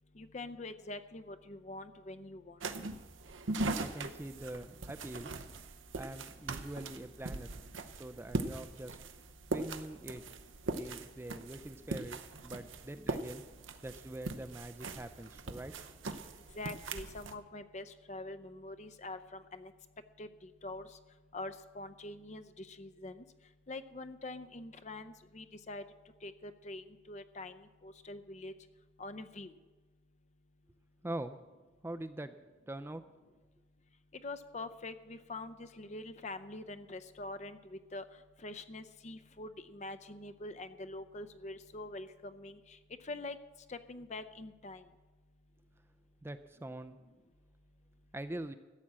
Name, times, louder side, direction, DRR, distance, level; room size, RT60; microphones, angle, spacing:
voice 1, 0.2-2.6 16.5-19.7 20.2-20.8 21.3-23.2 23.7-25.8 26.2-28.5 29.0-29.5 34.2-38.0 38.4-42.8 43.0-43.4 43.7-44.8, left 2 dB, 35° left, 10 dB, 0.6 m, -45 dB
sound 1, 2.6-17.3, right 3 dB, 85° right, 0.8 m, -41 dB
voice 2, 3.8-5.3 6.0-7.6 7.9-9.0 9.5-10.2 10.7-13.4 13.8-15.7 31.0-31.4 31.8-32.3 32.7-33.0 46.2-47.0 48.1-48.5, right 1 dB, 10° right, 10 dB, 0.4 m, -43 dB
14.0 x 8.4 x 7.5 m, 1.3 s
head